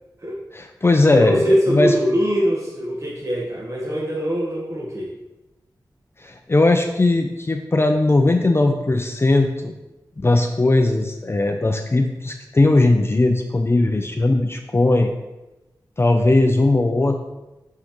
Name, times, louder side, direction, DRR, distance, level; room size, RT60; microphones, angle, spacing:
voice 1, 0.5-2.0 6.2-9.7 10.2-15.1 16.0-17.2, left 2 dB, 30° left, 5 dB, 0.5 m, -18 dB
voice 2, 1.1-5.1, equal, 40° right, -4 dB, 1.4 m, -22 dB
6.4 x 5.5 x 3.1 m, 1.0 s
cardioid pair, 50°, 8 cm